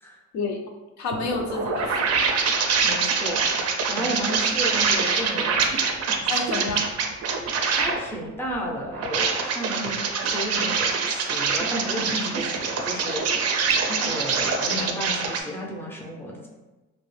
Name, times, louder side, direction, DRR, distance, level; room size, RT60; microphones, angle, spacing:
voice 1, 1.0-2.2 4.0-4.1 6.3-6.9 13.9-14.1, left 3 dB, 70° left, 2 dB, 0.4 m, -30 dB
sound 1, 1.1-8.0 8.8-15.4, right 5 dB, 55° right, 0.4 m, -24 dB
voice 2, 2.8-3.5 3.9-5.6 7.7-9.9 10.2-13.2 14.0-16.5, equal, 10° left, -1 dB, 0.5 m, -32 dB
2.3 x 2.1 x 3.1 m, 1.1 s
cardioid pair, 90°, 30 cm